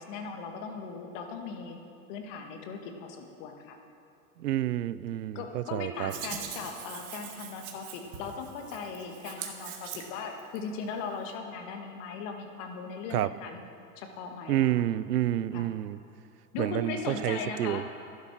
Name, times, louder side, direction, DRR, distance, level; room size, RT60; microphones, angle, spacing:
voice 1, 0.0-1.8 2.1-3.8 5.4-13.6 14.0-14.7 15.5-15.7 16.5-17.8, left 5 dB, 50° left, 4 dB, 1.9 m, -38 dB
voice 2, 4.4-6.1 13.1-13.3 14.5-16.0 16.6-17.8, right 13 dB, 85° right, 16 dB, 0.6 m, -29 dB
Hands, 6.1-10.6, right 7 dB, 65° right, 2.2 m, -42 dB
12.0 x 11.5 x 6.1 m, 2.6 s
hypercardioid pair, 115°, 45 cm